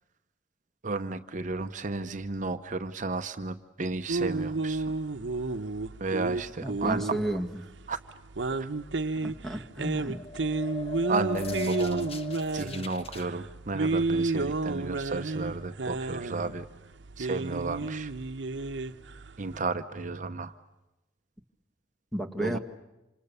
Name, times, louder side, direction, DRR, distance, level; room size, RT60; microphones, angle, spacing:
voice 1, 0.8-4.9 6.0-7.2 7.9-8.0 11.1-12.1 12.5-16.7 17.2-18.1 19.4-20.5 22.4-22.6, right 3 dB, 45° right, 0.8 m, -33 dB
sound 1, 4.1-19.6, right 3 dB, 80° right, 0.9 m, -32 dB
voice 2, 6.6-7.6 9.2-10.3 22.1-22.6, right 1 dB, ahead, 1.6 m, -32 dB
sound 2, 10.1-13.3, left 3 dB, 35° left, 1.3 m, -39 dB
27.5 x 27.0 x 6.8 m
head